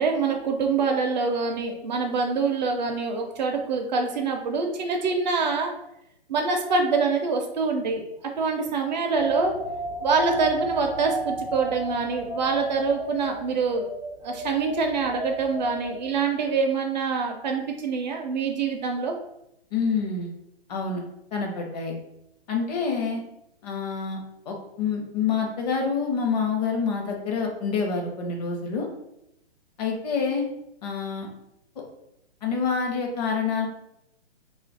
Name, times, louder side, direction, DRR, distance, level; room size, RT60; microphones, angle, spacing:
voice 1, 0.0-5.7 6.3-8.0 8.4-9.6 10.0-13.9 14.2-19.1, right 4 dB, 45° right, 3 dB, 0.5 m, -25 dB
sound 1, 9.1-16.4, right 1 dB, 5° left, 0.4 m, -34 dB
voice 2, 19.7-20.3 20.7-21.0 21.3-22.0 22.5-23.2 23.6-28.9 29.8-30.5 30.8-31.3 32.4-33.7, left 5 dB, 40° left, 1 dB, 0.8 m, -27 dB
2.7 x 2.4 x 3.9 m, 0.80 s
hypercardioid pair, 135°, 32 cm